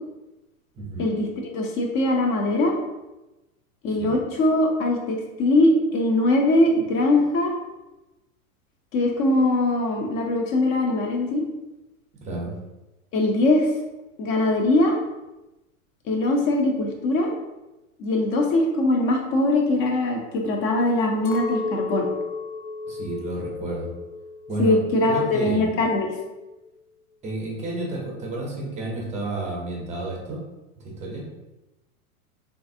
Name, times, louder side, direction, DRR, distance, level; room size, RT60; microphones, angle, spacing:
voice 1, 0.7-1.1 3.8-4.1 12.2-12.5 22.9-23.9 24.5-24.8 25.0-25.7 27.2-30.4 30.8-31.3, right 2 dB, 15° right, -2 dB, 0.6 m, -31 dB
voice 2, 1.5-2.7 3.8-7.5 8.9-11.4 13.1-13.7 14.2-14.9 16.1-17.3 18.0-22.1 24.6-26.1, left 2 dB, 30° left, 1 dB, 0.6 m, -21 dB
Chink clink, 21.2-25.6 25.9-26.7, left 5 dB, 75° left, 0.7 m, -33 dB
3.2 x 2.5 x 2.6 m, 1.0 s
hypercardioid pair, 120°, 43 cm